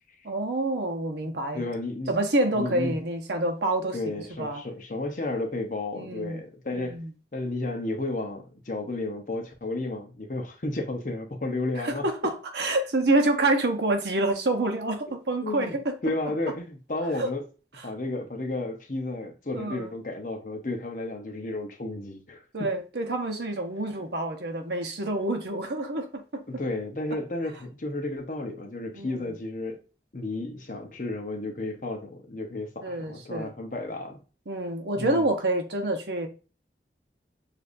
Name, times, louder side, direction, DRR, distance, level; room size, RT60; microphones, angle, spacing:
voice 1, 0.2-1.6 2.1-4.1 4.4-4.6 5.9-6.4 6.7-7.1 11.8-16.0 17.2-17.3 19.5-19.9 22.5-26.4 29.0-29.3 32.8-33.5 34.5-36.3, right 2 dB, 75° right, 0.9 m, -27 dB
voice 2, 1.5-2.1 2.5-3.0 3.9-7.0 7.3-12.0 15.4-15.8 16.0-17.5 17.8-22.4 23.9-24.0 25.5-25.6 26.5-29.8 30.1-34.2 35.0-35.3, left 2 dB, 45° left, 0.8 m, -32 dB
6.6 x 2.6 x 2.6 m
head